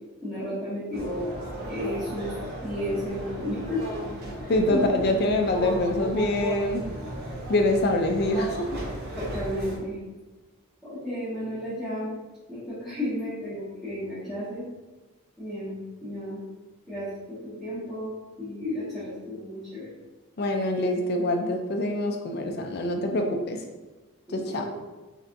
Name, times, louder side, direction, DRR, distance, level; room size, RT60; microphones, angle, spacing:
voice 1, 0.2-1.2 1.7-2.3 2.6-3.8 4.4-4.9 9.1-10.0 10.8-12.1 12.5-14.6 15.4-16.4 16.9-18.1 18.4-19.9 24.3-24.7, left 1 dB, ahead, -16 dB, 1.4 m, -33 dB
sound 1, 0.9-9.8, equal, 45° right, 0.7 m, -35 dB
voice 2, 4.5-6.8 7.5-8.8 20.4-23.6 24.3-24.7, left 1 dB, 45° left, 4 dB, 0.4 m, -25 dB
4.1 x 3.3 x 2.6 m, 1.2 s
head